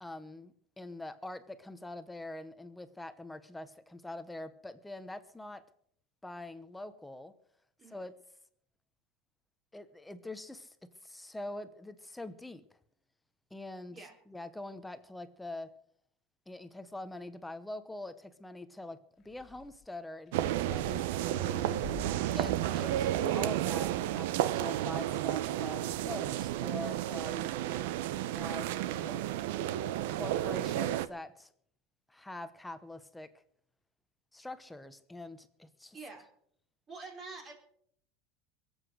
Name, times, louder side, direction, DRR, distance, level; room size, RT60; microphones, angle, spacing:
voice 1, 0.0-5.6 6.2-7.3 7.9-8.1 9.7-10.8 11.0-12.6 13.5-14.0 14.3-15.7 16.5-19.0 19.2-21.8 22.3-27.5 28.3-29.2 30.1-31.5 32.1-33.3 34.3-36.0, left 2 dB, 5° left, 11 dB, 1.0 m, -44 dB
sound 1, 19.2-19.9 20.3-22.2 22.6-23.3 23.6-24.3, left 6 dB, 25° left, 1.4 m, -50 dB
sound 2, 20.3-31.1, right 13 dB, 75° right, 0.8 m, -32 dB
voice 2, 35.9-36.3 36.9-37.5, right 3 dB, 25° right, 3 dB, 4.2 m, -46 dB
22.5 x 8.1 x 6.3 m, 0.65 s
supercardioid pair, 150°, 0 cm